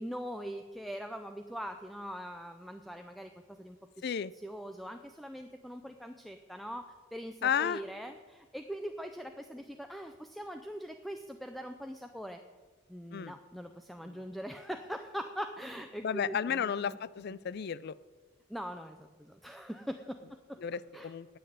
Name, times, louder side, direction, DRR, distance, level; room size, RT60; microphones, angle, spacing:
voice 1, 0.0-4.0 4.4-12.4 12.9-17.0 18.5-20.6 20.9-21.1, equal, ahead, 6 dB, 0.5 m, -42 dB
voice 2, 4.0-4.3 7.4-7.8 13.1-13.3 14.0-14.2 16.0-18.0 20.6-21.3, left 7 dB, 55° left, 18 dB, 0.4 m, -33 dB
9.8 x 8.0 x 9.3 m, 1.4 s
head